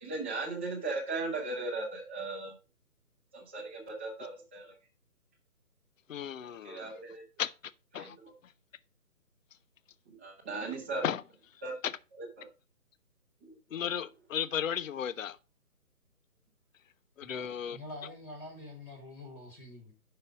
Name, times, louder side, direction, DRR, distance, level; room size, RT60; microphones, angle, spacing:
voice 1, 0.0-2.5 3.3-4.7 6.6-7.2 7.9-8.1 10.1-11.0 11.6-11.7 12.2-12.4, right 3 dB, 10° right, 0.8 m, -37 dB
voice 2, 6.1-6.9 7.4-7.5 7.9-8.2 11.0-11.2 11.8-11.9 13.7-15.4 17.2-17.8, left 9 dB, 60° left, 0.5 m, -34 dB
voice 3, 17.2-19.9, left 2 dB, 20° left, 1.3 m, -46 dB
5.7 x 5.3 x 5.0 m
figure-of-eight pair, 150°, 45 cm